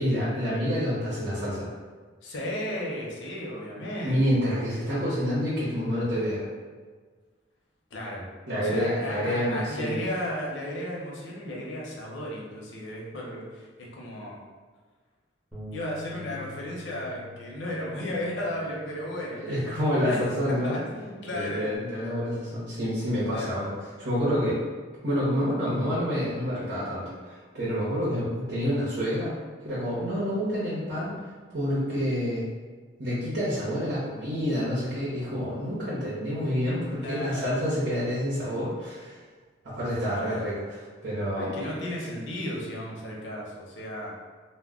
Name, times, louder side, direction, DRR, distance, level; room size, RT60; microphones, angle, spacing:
voice 1, 0.0-1.7 4.0-6.5 8.5-10.0 19.4-20.8 21.3-23.7 24.0-24.6 25.0-29.3 29.6-31.1 31.5-32.4 33.0-39.2 39.6-41.6, equal, 85° right, -10 dB, 0.8 m, -28 dB
voice 2, 2.2-4.4 7.9-8.3 8.5-14.4 15.7-19.7 20.0-20.2 20.5-21.7 23.3-23.6 37.0-37.7 41.4-44.1, left 1 dB, 85° left, -3 dB, 0.7 m, -34 dB
Bass guitar, 15.5-21.8, left 3 dB, ahead, 0.5 m, -48 dB
2.2 x 2.1 x 3.5 m, 1.5 s
head